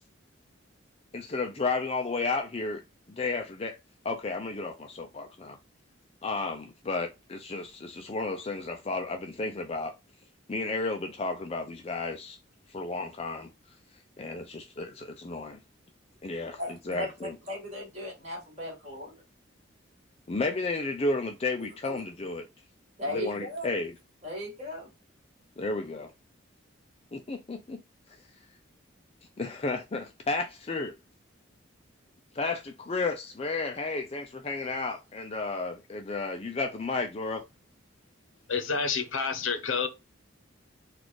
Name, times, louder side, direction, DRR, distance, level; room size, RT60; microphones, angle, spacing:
voice 1, 1.1-2.8 3.1-3.8 4.0-5.6 6.2-9.9 10.5-12.4 12.7-13.5 14.2-15.6 16.2-16.6 16.9-17.3 20.3-22.5 23.1-23.9 25.6-26.1 27.1-27.8 29.4-30.9 32.3-37.4, left 3 dB, 30° left, 0.4 m, -32 dB
voice 2, 16.6-19.2 21.6-22.0 23.0-23.7 24.2-24.9, left 1 dB, 35° right, 2.0 m, -37 dB
voice 3, 38.5-39.9, left 5 dB, 80° left, 0.8 m, -29 dB
4.1 x 2.4 x 4.6 m
head